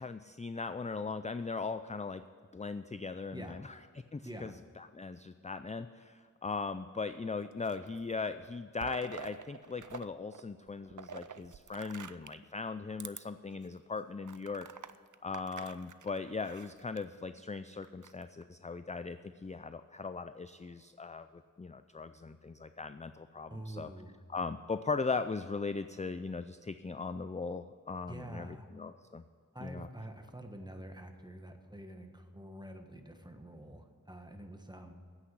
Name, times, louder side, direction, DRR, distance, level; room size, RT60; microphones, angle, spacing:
voice 1, 0.0-2.2 2.5-3.8 4.1-14.7 15.2-23.9 24.3-29.2 29.6-29.9, left 4 dB, 20° left, 11 dB, 0.4 m, -39 dB
sound 1, 7.4-8.1 8.4-10.1 10.3-12.4 12.9-13.2 13.7-13.8 14.2-17.0 17.8-18.4, right 6 dB, 60° right, 0.6 m, -47 dB
voice 2, 23.5-24.2 28.1-28.7 29.5-34.9, right 1 dB, 10° right, 5 dB, 1.4 m, -47 dB
9.8 x 8.5 x 8.2 m, 2.1 s
wide cardioid pair, 45°, 34 cm